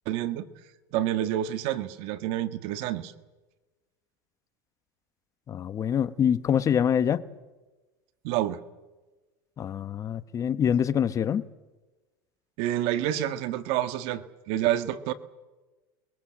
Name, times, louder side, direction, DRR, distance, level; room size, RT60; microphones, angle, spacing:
voice 1, 0.0-0.5 0.9-3.1 8.2-8.6 12.6-15.1, right 12 dB, 60° right, 1.7 m, -28 dB
voice 2, 5.5-7.2 9.6-11.5, left 8 dB, 30° left, 1.1 m, -25 dB
29.5 x 22.0 x 7.6 m
supercardioid pair, 125°, 11 cm